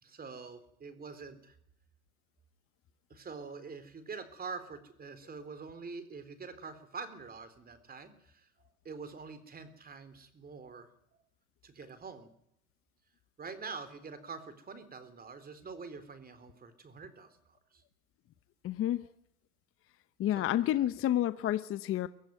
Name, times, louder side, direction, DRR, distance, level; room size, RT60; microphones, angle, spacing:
voice 1, 0.0-1.6 3.1-10.9 11.6-12.3 13.4-17.8 20.4-20.9, right 4 dB, 20° right, 11 dB, 3.9 m, -46 dB
voice 2, 18.6-19.1 20.2-22.1, left 12 dB, 30° left, 13 dB, 0.9 m, -30 dB
24.0 x 16.5 x 9.5 m, 0.75 s
hypercardioid pair, 110°, 43 cm